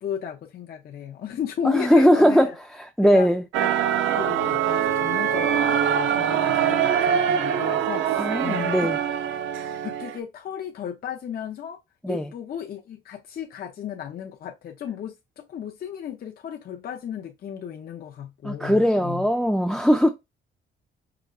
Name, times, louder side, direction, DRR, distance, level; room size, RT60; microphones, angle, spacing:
voice 1, 0.0-2.5 3.0-3.3 3.6-3.7 4.1-8.9 9.8-11.8 12.1-19.3, left 9 dB, 50° left, 0.5 m, -34 dB
voice 2, 1.6-3.4 8.2-9.0 12.0-12.3 18.4-20.1, equal, ahead, 0.3 m, -20 dB
sound 1, 3.5-10.2, right 8 dB, 80° right, 0.5 m, -23 dB
4.8 x 2.2 x 2.3 m
cardioid pair, 90°, 20 cm